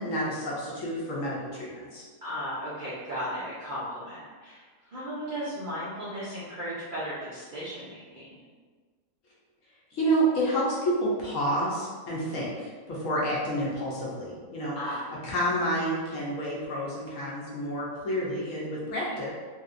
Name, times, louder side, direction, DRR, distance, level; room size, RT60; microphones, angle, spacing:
voice 1, 0.0-2.0 9.9-19.3, right 1 dB, 60° left, -6 dB, 1.1 m, -29 dB
voice 2, 2.2-4.6 4.9-8.4 14.7-15.0 18.8-19.3, equal, 55° right, -10 dB, 0.5 m, -36 dB
3.4 x 2.7 x 2.5 m, 1.5 s
omnidirectional pair, 1.7 m